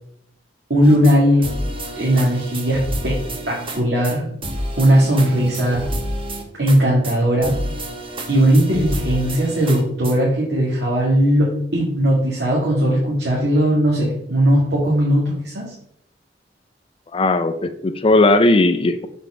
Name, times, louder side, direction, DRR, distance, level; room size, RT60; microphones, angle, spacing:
voice 1, 0.7-1.5 2.0-3.2 3.5-4.3 4.8-5.9 6.6-7.5 8.3-15.7, equal, 65° right, -5 dB, 2.1 m, -18 dB
sound 1, 0.8-1.2 1.4-3.8 4.0-4.1 4.4-6.8 7.0-7.2 7.4-10.2, equal, 30° right, 1.2 m, -29 dB
voice 2, 17.1-19.1, left 2 dB, 30° left, 10 dB, 0.4 m, -17 dB
6.9 x 4.3 x 6.2 m, 0.74 s
head